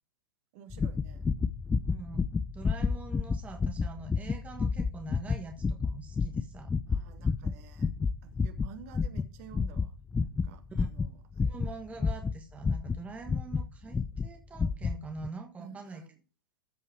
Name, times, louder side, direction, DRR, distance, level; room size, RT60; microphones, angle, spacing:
voice 1, 0.5-1.3 6.8-7.9 8.2-11.4 15.6-16.2, right 7 dB, 45° right, 7 dB, 1.8 m, -51 dB
sound 1, 0.7-13.7 13.9-14.3 14.6-15.0 15.2-15.3, left 5 dB, 10° left, 0.4 m, -30 dB
voice 2, 1.9-6.7 10.8-10.9 11.4-16.0, right 4 dB, 10° right, 4 dB, 1.3 m, -44 dB
13.5 x 5.6 x 4.7 m, 0.34 s
figure-of-eight pair, 105°, 11 cm